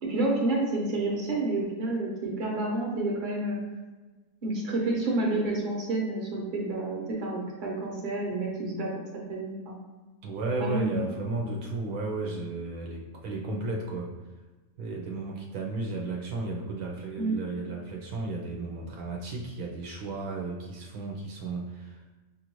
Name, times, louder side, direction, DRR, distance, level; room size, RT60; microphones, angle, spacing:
voice 1, 0.0-3.6 4.4-8.9 9.3-9.8 10.6-11.1 17.2-17.4, right 2 dB, 40° right, -2 dB, 0.9 m, -29 dB
voice 2, 10.2-14.1 14.8-22.1, right 3 dB, 75° right, -1 dB, 1.1 m, -34 dB
5.3 x 2.5 x 2.9 m, 1.2 s
omnidirectional pair, 1.6 m